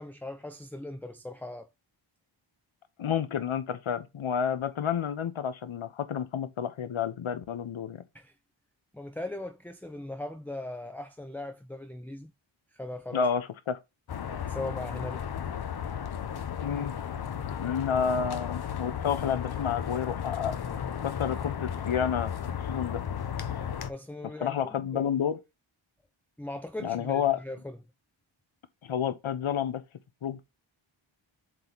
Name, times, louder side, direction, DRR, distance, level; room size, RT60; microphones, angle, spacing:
voice 1, 0.0-1.7 8.1-8.3 8.9-12.3 12.7-13.3 14.3-15.2 23.9-25.1 26.4-27.8, left 1 dB, 5° left, 0.5 m, -39 dB
voice 2, 3.0-8.0 13.1-13.8 16.6-16.9 17.6-20.6 21.0-23.0 24.4-25.4 26.8-27.4 28.8-29.8 30.2-30.4, left 8 dB, 75° left, 1.0 m, -30 dB
sound 1, 14.1-23.9, left 8 dB, 50° left, 0.8 m, -34 dB
7.7 x 3.3 x 4.0 m
wide cardioid pair, 135°, 49 cm